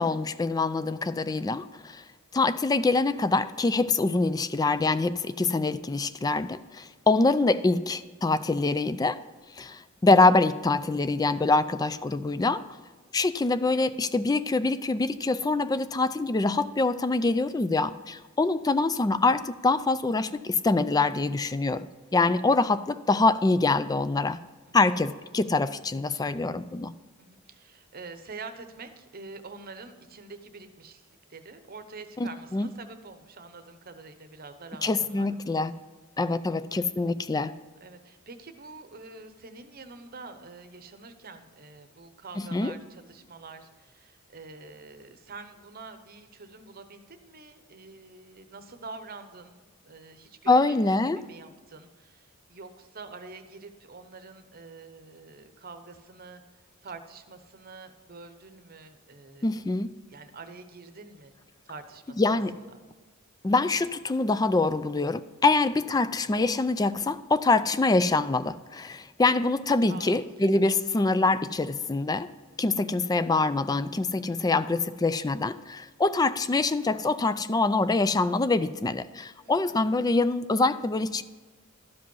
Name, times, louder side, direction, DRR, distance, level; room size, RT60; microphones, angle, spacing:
voice 1, 0.0-2.0 2.3-9.2 9.6-12.6 13.1-21.9 22.1-24.4 24.7-26.9 32.2-32.7 34.8-35.8 36.2-37.5 42.4-42.7 50.5-51.2 59.4-59.9 62.2-62.5 63.4-72.3 72.6-81.2, left 3 dB, 20° left, 14 dB, 0.3 m, -25 dB
voice 2, 24.7-25.0 26.2-26.4 27.2-35.3 36.3-36.6 37.8-56.4 56.8-59.7 60.1-61.3 61.6-62.8 69.9-70.7 79.4-79.8, right 4 dB, 45° right, 8 dB, 0.8 m, -46 dB
12.5 x 5.2 x 5.4 m, 1.4 s
head